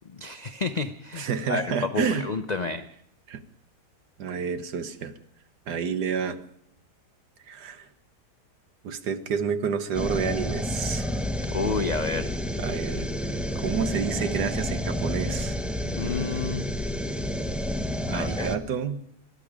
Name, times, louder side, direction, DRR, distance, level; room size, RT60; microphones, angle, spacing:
voice 1, 0.1-2.9 11.5-12.3 15.9-16.7 18.1-18.5, left 3 dB, 60° left, 8 dB, 0.4 m, -30 dB
voice 2, 1.2-2.3 3.3-3.4 4.2-5.1 5.7-6.4 7.5-7.9 8.8-11.2 12.6-13.1 13.5-15.6 18.1-19.0, right 6 dB, 75° right, 10 dB, 1.6 m, -29 dB
sound 1, 9.9-18.6, equal, ahead, 0.5 m, -30 dB
21.0 x 13.0 x 5.0 m, 0.71 s
omnidirectional pair, 1.8 m